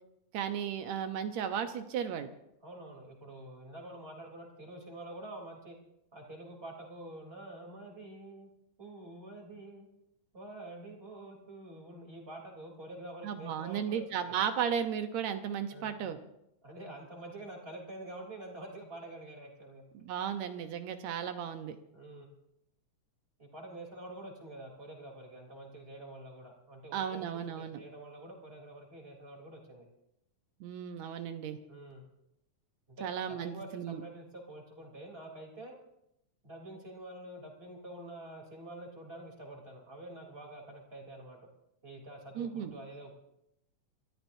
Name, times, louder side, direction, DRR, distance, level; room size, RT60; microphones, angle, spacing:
voice 1, 0.3-2.3 13.2-16.2 20.0-21.8 26.9-27.8 30.6-31.6 33.0-34.0 42.4-42.7, right 8 dB, 70° right, 9 dB, 2.1 m, -35 dB
voice 2, 2.6-5.8 6.1-8.5 8.8-9.9 10.3-14.3 15.7-16.1 16.6-19.8 21.9-22.3 23.4-27.3 27.6-29.9 31.6-32.1 32.9-35.8 36.4-41.4 41.8-43.1, right 1 dB, 20° right, 0 dB, 3.4 m, -47 dB
29.0 x 14.0 x 2.7 m, 0.82 s
omnidirectional pair, 3.5 m